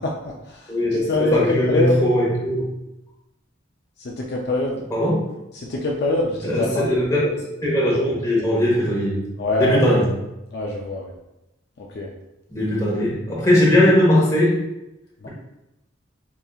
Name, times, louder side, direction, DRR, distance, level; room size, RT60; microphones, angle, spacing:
voice 1, 0.0-2.0 4.0-4.8 5.5-6.9 9.4-9.8 10.5-11.1 11.8-12.1 15.2-15.3, left 2 dB, 55° left, -2 dB, 0.4 m, -24 dB
voice 2, 0.7-2.7 4.9-5.2 6.4-9.2 9.6-10.1 12.5-14.6, equal, 15° left, -6 dB, 1.1 m, -19 dB
4.9 x 2.7 x 2.3 m, 0.91 s
head